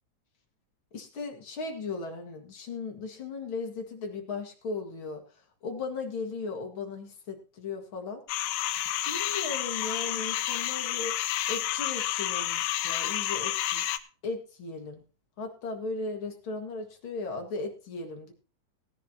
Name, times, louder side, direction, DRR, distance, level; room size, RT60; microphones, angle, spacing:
voice 1, 0.9-5.2 5.6-8.2 9.0-11.1 11.5-13.9 14.2-15.0 15.4-18.3, left 3 dB, 45° left, 2 dB, 2.1 m, -37 dB
sound 1, 8.3-14.0, left 13 dB, 85° left, 2.5 m, -30 dB
18.0 x 10.5 x 2.9 m, 0.35 s
omnidirectional pair, 4.0 m